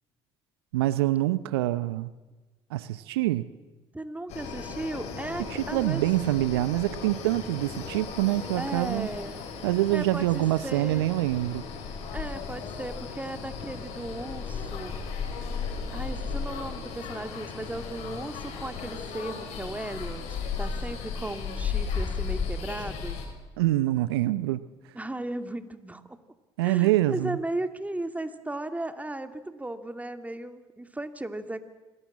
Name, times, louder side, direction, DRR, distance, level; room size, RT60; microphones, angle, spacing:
voice 1, 0.7-2.1 2.7-3.5 5.5-9.1 9.6-11.6 23.6-24.6 26.6-27.4, right 16 dB, 80° right, 0.8 m, -25 dB
voice 2, 3.9-6.0 8.5-9.4 9.9-11.1 12.1-14.9 15.4-15.5 15.9-23.2 24.9-26.2 26.6-31.6, right 2 dB, 10° right, 2.6 m, -36 dB
sound 1, 4.3-23.2, left 5 dB, 60° left, 6.9 m, -35 dB
28.0 x 21.0 x 7.5 m
hypercardioid pair, 60°, 13 cm